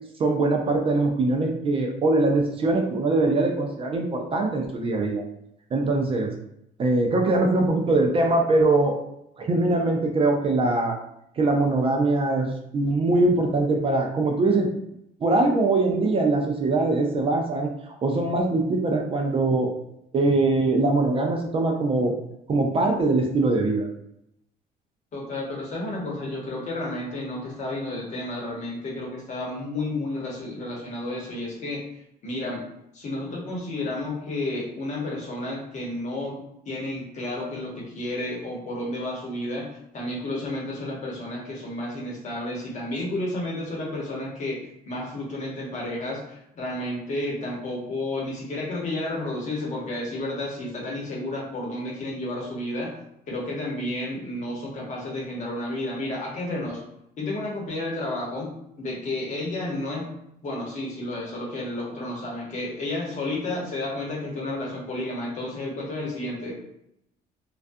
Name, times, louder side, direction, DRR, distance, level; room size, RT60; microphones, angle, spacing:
voice 1, 0.2-5.2 5.7-6.3 6.8-9.0 9.4-11.0 11.4-14.7 15.2-17.7 18.0-19.7 20.1-22.2 22.5-23.9, right 2 dB, 35° right, 2 dB, 0.4 m, -22 dB
voice 2, 25.1-31.8 32.2-32.6 32.9-36.4 36.7-39.7 39.9-52.9 53.3-56.8 57.2-58.5 58.8-60.0 60.4-66.5, left 1 dB, 45° left, -2 dB, 0.9 m, -31 dB
2.3 x 2.2 x 2.5 m, 0.78 s
cardioid pair, 110°, 17 cm